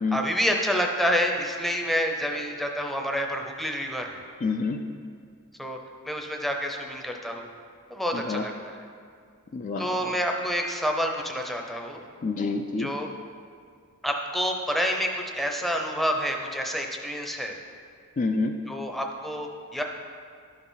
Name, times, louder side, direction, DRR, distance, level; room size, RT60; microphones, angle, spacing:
voice 1, 0.1-4.2 5.6-5.8 6.0-7.5 7.9-8.8 9.8-12.1 12.8-13.1 14.0-17.6 18.7-19.8, equal, ahead, 2 dB, 0.7 m, -28 dB
voice 2, 4.4-4.8 8.1-8.4 9.5-9.9 12.2-12.9 18.2-18.5, left 3 dB, 35° left, 4 dB, 0.4 m, -27 dB
12.0 x 6.1 x 4.0 m, 2.2 s
head